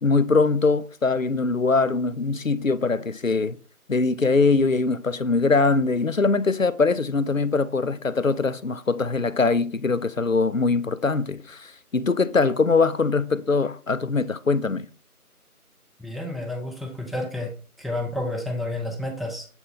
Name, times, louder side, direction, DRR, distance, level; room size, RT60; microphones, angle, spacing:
voice 1, 0.0-3.6 3.9-14.9, left 4 dB, 60° left, 0.5 m, -22 dB
voice 2, 16.0-17.5 17.8-19.5, left 1 dB, ahead, 0.7 m, -30 dB
7.8 x 4.3 x 3.7 m
figure-of-eight pair, 175°, 45 cm